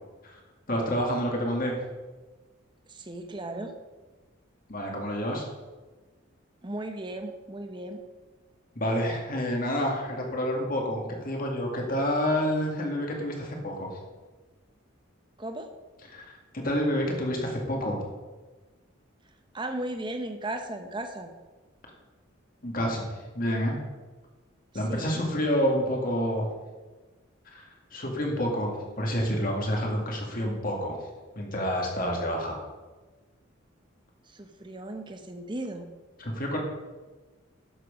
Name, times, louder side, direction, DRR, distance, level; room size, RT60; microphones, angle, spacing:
voice 1, 0.7-1.8 4.7-5.5 8.8-13.9 16.1-18.1 22.6-23.8 24.7-26.5 27.5-27.6 27.9-31.0 31.4-32.6 36.2-36.6, equal, 45° left, 0 dB, 2.1 m, -28 dB
voice 2, 2.9-3.7 6.6-8.0 15.4-15.7 19.5-21.3 24.7-25.2 34.3-35.9, right 1 dB, 25° right, 6 dB, 0.9 m, -36 dB
11.0 x 7.5 x 5.2 m, 1.3 s
head